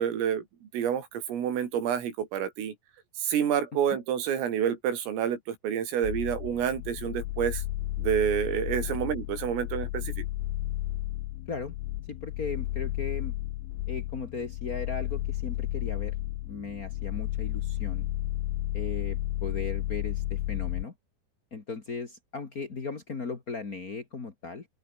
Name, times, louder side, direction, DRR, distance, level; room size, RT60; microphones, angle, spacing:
voice 1, 0.0-2.7 3.2-7.6 8.0-10.3, right 9 dB, 85° right, 6.3 m, -28 dB
sound 1, 6.0-20.9, left 17 dB, 80° left, 3.6 m, -33 dB
voice 2, 12.1-13.4 13.9-16.1 16.4-18.1 18.7-20.9 21.5-24.7, left 4 dB, 50° left, 1.1 m, -37 dB
open air
omnidirectional pair, 5.7 m